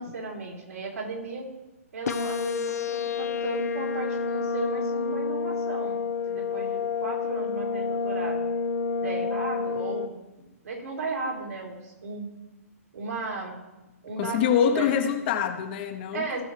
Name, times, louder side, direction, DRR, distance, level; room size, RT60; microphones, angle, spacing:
voice 1, 0.0-1.5 1.9-6.0 6.3-8.4 9.0-10.1 10.6-12.3 12.9-13.6 14.0-15.1 16.1-16.4, right 3 dB, 85° right, -2 dB, 3.5 m, -35 dB
sound 1, 2.1-10.1, left 5 dB, 80° left, 0.7 m, -29 dB
voice 2, 14.2-16.4, left 8 dB, 40° left, 7 dB, 0.9 m, -25 dB
17.0 x 6.3 x 3.3 m, 1.0 s
hypercardioid pair, 155°, 8 cm